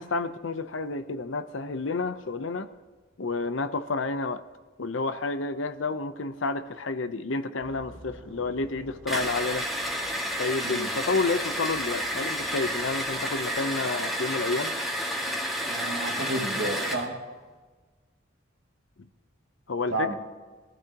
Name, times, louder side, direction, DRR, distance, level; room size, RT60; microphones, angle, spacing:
voice 1, 0.0-2.7 3.2-4.4 4.8-9.7 10.4-14.7 19.7-20.1, left 3 dB, 85° left, 10 dB, 0.8 m, -30 dB
sound 1, 7.6-13.9, equal, 20° right, 3.1 m, -52 dB
sound 2, 9.1-17.1, equal, ahead, 2.0 m, -30 dB
voice 2, 15.6-17.2 19.9-20.2, right 2 dB, 80° right, 0 dB, 2.4 m, -31 dB
22.5 x 15.0 x 3.0 m, 1.3 s
head